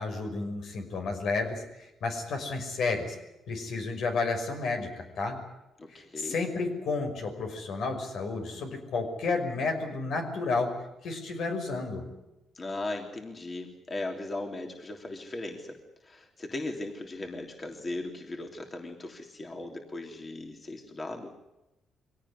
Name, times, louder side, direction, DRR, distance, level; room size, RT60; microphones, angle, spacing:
voice 1, 0.0-3.2 3.5-5.4 5.9-10.8 11.0-12.1, left 3 dB, 70° left, 4 dB, 5.7 m, -31 dB
voice 2, 5.8-6.4 12.5-21.3, left 2 dB, 30° left, 3 dB, 3.3 m, -38 dB
23.5 x 17.5 x 9.9 m, 0.95 s
cardioid pair, 90°, 0 cm